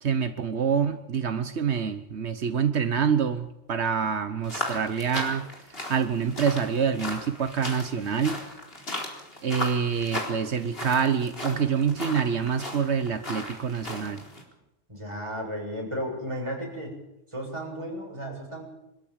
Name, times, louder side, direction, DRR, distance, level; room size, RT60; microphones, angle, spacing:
voice 1, 0.0-8.4 9.4-14.2, right 7 dB, 85° right, 9 dB, 1.4 m, -26 dB
sound 1, 4.4-14.4, left 1 dB, 60° left, 4.4 m, -37 dB
voice 2, 14.9-17.0 17.3-18.6, equal, 25° right, -1 dB, 7.2 m, -34 dB
24.5 x 13.5 x 8.9 m, 0.91 s
omnidirectional pair, 1.1 m